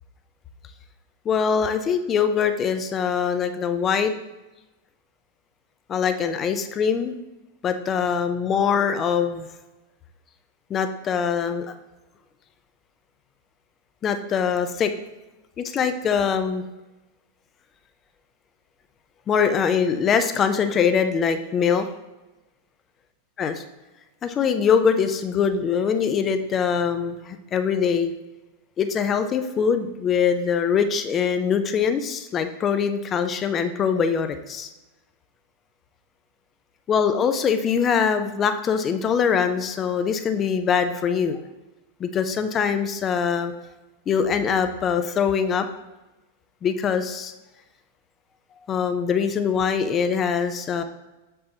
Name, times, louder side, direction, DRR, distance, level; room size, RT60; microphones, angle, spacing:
voice 1, 1.3-4.1 5.9-7.1 7.6-9.5 10.7-11.7 14.0-14.9 15.6-16.6 19.3-21.9 23.4-23.6 24.2-28.1 28.8-34.7 36.9-41.4 42.0-43.5 44.1-45.7 46.6-47.3 48.7-50.8, left 6 dB, 30° left, 9 dB, 0.5 m, -23 dB
6.7 x 5.4 x 2.8 m, 1.1 s
figure-of-eight pair, 95°, 0 cm